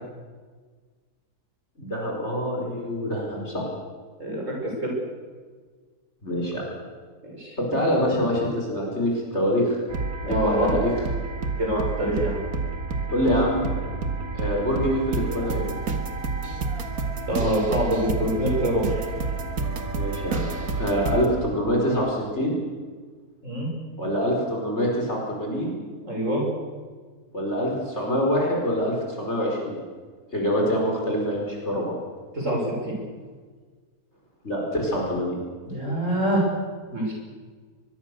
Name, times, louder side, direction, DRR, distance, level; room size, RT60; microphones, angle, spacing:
voice 1, 1.8-3.7 6.2-6.7 7.6-9.8 10.2-10.8 13.1-13.6 14.3-15.7 19.9-20.5 20.8-22.5 24.0-25.8 27.3-29.8 30.3-32.0 34.4-35.4, equal, 45° left, -2 dB, 5.3 m, -25 dB
voice 2, 4.2-4.9 7.2-7.6 10.2-10.7 11.6-12.4 17.3-18.8 23.4-23.7 26.0-26.4 32.3-33.0 35.7-36.4 36.9-37.1, equal, 50° right, -2 dB, 7.2 m, -25 dB
sound 1, 9.9-21.3, right 4 dB, 70° right, 2.2 m, -29 dB
24.0 x 22.0 x 6.9 m, 1.5 s
omnidirectional pair, 1.6 m